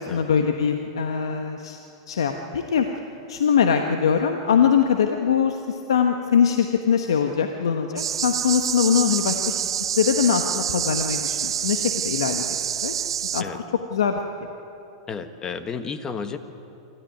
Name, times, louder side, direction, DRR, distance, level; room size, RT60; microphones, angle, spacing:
voice 1, 0.1-1.8 2.1-2.9 3.3-9.6 10.0-12.4 12.8-12.9 13.3-13.5 13.9-14.2, left 7 dB, 80° left, 5 dB, 1.2 m, -22 dB
sound 1, 8.0-13.4, right 9 dB, 85° right, 0.5 m, -27 dB
voice 2, 15.1-16.4, left 5 dB, 25° left, 9 dB, 1.5 m, -32 dB
25.5 x 14.0 x 9.4 m, 2.9 s
hypercardioid pair, 115°, 3 cm